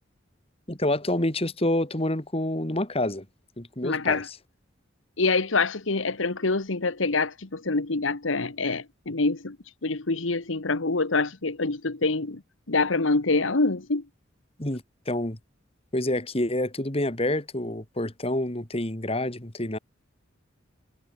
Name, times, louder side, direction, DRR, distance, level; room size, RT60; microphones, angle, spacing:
voice 1, 0.7-3.3 3.6-4.2 14.6-15.4 15.9-19.8, left 1 dB, 30° left, 2.5 m, -28 dB
voice 2, 3.8-4.3 5.2-9.6 9.8-12.4 12.7-14.0, left 3 dB, 90° left, 1.5 m, -25 dB
head